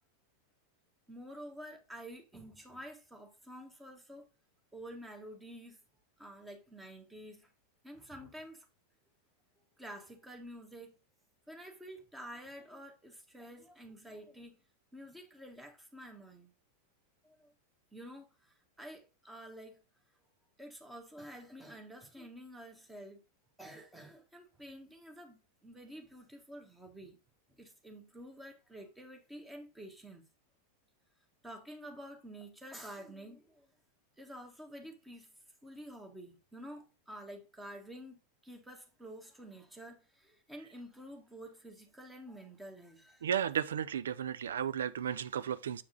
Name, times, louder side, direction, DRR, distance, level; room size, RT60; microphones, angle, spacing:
voice 1, 1.1-4.3 4.7-5.8 6.2-7.5 7.8-8.7 9.8-11.0 11.5-14.6 14.9-16.5 17.2-17.5 17.9-19.8 20.6-23.2 23.6-27.2 27.6-30.2 31.4-33.7 34.2-35.3 35.6-43.3, equal, 10° right, 1.6 m, -49 dB
voice 2, 43.2-45.8, right 9 dB, 65° right, 0.5 m, -34 dB
7.4 x 4.7 x 3.9 m
figure-of-eight pair, 90°, 0 cm